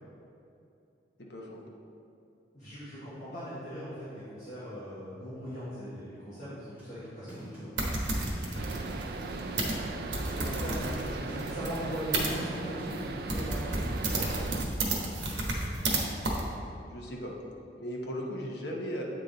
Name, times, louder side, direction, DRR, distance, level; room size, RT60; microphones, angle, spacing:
voice 1, 1.2-1.6 10.5-10.6 11.3-11.4 16.9-17.4 17.8-19.0, equal, 65° left, -2 dB, 1.0 m, -37 dB
voice 2, 2.5-7.7 10.3-14.3, equal, 40° left, -13 dB, 1.5 m, -40 dB
sound 1, 6.8-14.8, right 1 dB, 10° right, 1.5 m, -47 dB
sound 2, 7.8-12.3 12.9-13.0 13.3-16.0 16.2-16.4, right 2 dB, 90° right, 1.1 m, -32 dB
sound 3, 8.6-14.7, right 3 dB, 55° right, 0.4 m, -38 dB
8.0 x 3.9 x 4.0 m, 2.6 s
head